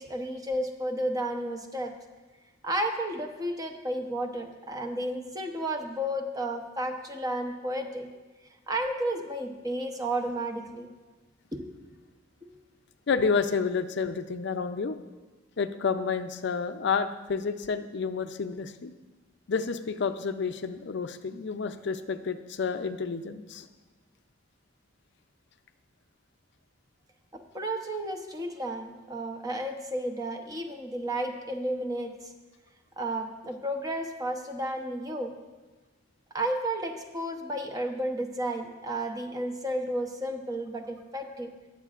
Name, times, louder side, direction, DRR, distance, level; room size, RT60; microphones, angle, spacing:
voice 1, 0.0-1.9 2.6-8.1 8.7-10.9 11.5-11.7 12.4-12.5 27.5-32.3 33.0-35.3 36.3-41.5, right 1 dB, 20° right, 4 dB, 0.8 m, -32 dB
voice 2, 13.1-15.0 15.6-18.9 19.5-23.7, left 5 dB, 65° left, 9 dB, 0.5 m, -30 dB
19.5 x 7.4 x 2.4 m, 1.2 s
head